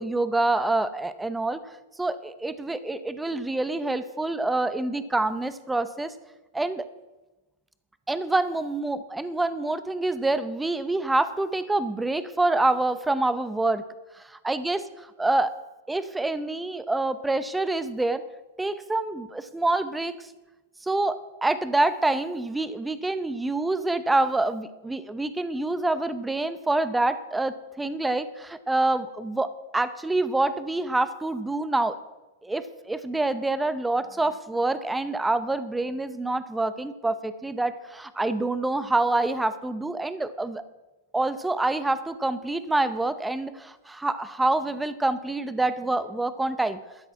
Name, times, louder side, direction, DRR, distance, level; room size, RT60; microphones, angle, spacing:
voice 1, 0.0-1.7 2.0-6.1 6.5-6.8 8.1-13.8 14.2-15.6 15.9-18.2 18.6-20.1 20.8-32.0 32.4-40.6 41.1-46.8, right 2 dB, 5° right, 12 dB, 0.7 m, -26 dB
12.5 x 9.8 x 4.7 m, 1.1 s
hypercardioid pair, 135°, 0 cm